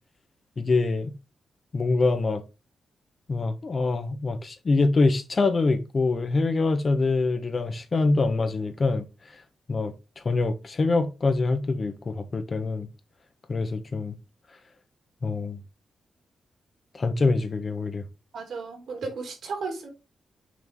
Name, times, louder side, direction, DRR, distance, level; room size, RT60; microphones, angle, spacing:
voice 1, 0.6-1.1 1.7-2.4 3.3-9.1 9.7-9.9 10.2-12.9 13.5-14.1 15.2-15.6 16.9-18.0, left 3 dB, 35° left, 1.0 m, -24 dB
voice 2, 18.3-19.9, right 4 dB, 70° right, 2.6 m, -34 dB
6.1 x 4.6 x 3.5 m
cardioid pair, 115°, 0 cm